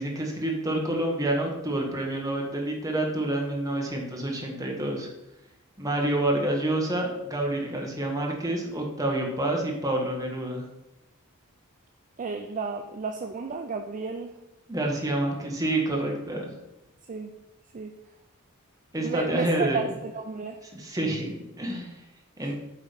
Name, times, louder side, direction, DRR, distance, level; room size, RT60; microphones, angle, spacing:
voice 1, 0.0-5.1 5.8-10.6 14.7-16.6 18.9-19.8 20.6-21.9 22.4-22.5, right 1 dB, 15° right, 0 dB, 1.4 m, -28 dB
voice 2, 12.2-14.3 17.1-17.3 17.7-17.9 19.0-20.6 22.4-22.5, right 4 dB, 35° right, 5 dB, 0.4 m, -32 dB
8.5 x 3.7 x 5.1 m, 0.92 s
head